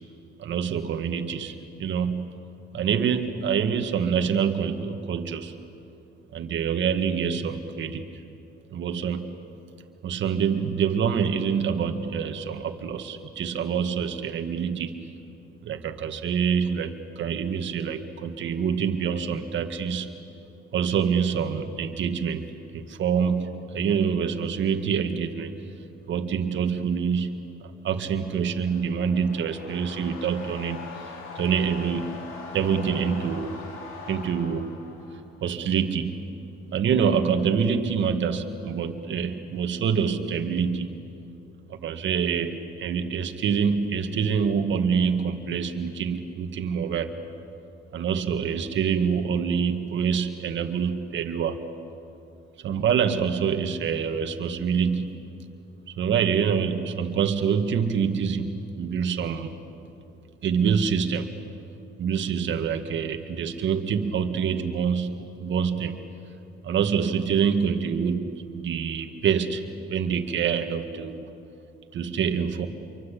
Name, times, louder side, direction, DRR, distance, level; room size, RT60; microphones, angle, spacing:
voice 1, 0.4-2.4 2.7-5.6 6.3-8.0 8.7-9.3 10.0-15.1 15.6-20.1 20.7-25.5 26.1-32.2 32.5-33.6 34.1-34.7 35.4-36.3 36.7-41.0 41.7-47.2 47.9-51.6 52.6-55.2 56.0-59.5 60.4-61.3 62.0-66.0 66.6-69.6 69.9-71.3 71.9-72.7, right 7 dB, 70° right, 6 dB, 1.9 m, -26 dB
sound 1, 28.3-35.4, left 4 dB, 90° left, 3.6 m, -42 dB
27.5 x 24.0 x 8.5 m, 2.6 s
cardioid pair, 90°, 20 cm